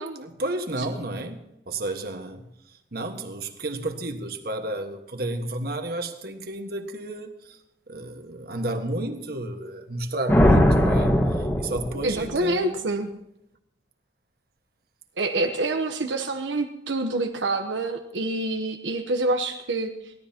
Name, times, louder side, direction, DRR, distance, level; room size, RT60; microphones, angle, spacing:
voice 1, 0.2-1.4 1.7-2.4 2.9-7.6 7.9-12.8, right 1 dB, 55° right, 6 dB, 1.6 m, -31 dB
sound 1, 10.3-12.3, equal, 15° left, 1.6 m, -20 dB
voice 2, 12.0-13.1 15.2-20.1, right 2 dB, 80° right, 5 dB, 1.0 m, -27 dB
23.5 x 17.0 x 2.9 m, 0.83 s
head